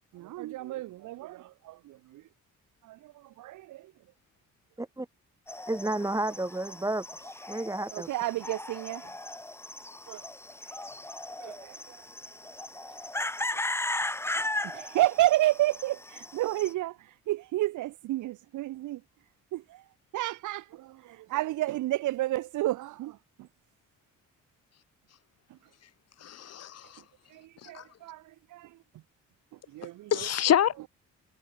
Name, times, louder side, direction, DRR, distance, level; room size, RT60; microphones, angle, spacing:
voice 1, 0.1-2.2 2.8-3.9 7.9-9.1 10.1-10.3 10.6-10.7 11.4-12.1 12.6-12.9 13.4-13.6 14.4-19.0 19.5-19.8 20.1-23.5 25.5-25.6 27.3-28.8 29.7-30.2, right 16 dB, 80° right, 0.9 m, -31 dB
sound 1, 5.5-16.7, left 2 dB, 10° left, 1.1 m, -37 dB
voice 2, 5.7-8.1, right 2 dB, 10° right, 2.5 m, -32 dB
voice 3, 26.2-27.0 27.6-27.9 30.1-30.9, left 10 dB, 55° left, 1.3 m, -27 dB
cardioid pair, 90°, 30 cm